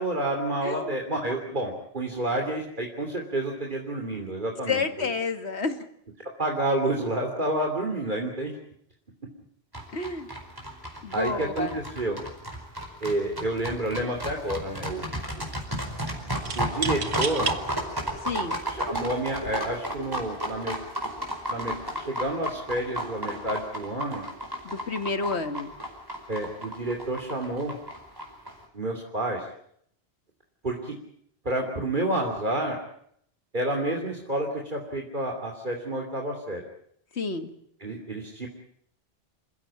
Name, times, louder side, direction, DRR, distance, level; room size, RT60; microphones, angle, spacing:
voice 1, 0.0-5.1 6.4-8.5 11.1-12.2 13.0-15.1 15.4-15.5 16.5-17.5 18.7-20.7 21.5-24.3 26.3-27.8 28.7-29.4 30.6-31.0 31.4-32.8 33.5-36.6 37.8-38.5, right 1 dB, 50° right, 1 dB, 3.2 m, -29 dB
voice 2, 0.6-0.9 4.7-5.8 9.9-10.3 11.0-11.8 18.3-18.6 24.6-25.7 37.2-37.5, left 4 dB, 90° left, 9 dB, 2.2 m, -29 dB
sound 1, 9.7-28.5, equal, 20° right, 4.7 m, -33 dB
sound 2, 13.3-13.6 13.9-14.5 16.5-17.6 18.3-18.4 19.3-19.6, right 5 dB, 80° right, 1.7 m, -32 dB
27.5 x 16.0 x 8.7 m, 0.69 s
omnidirectional pair, 1.1 m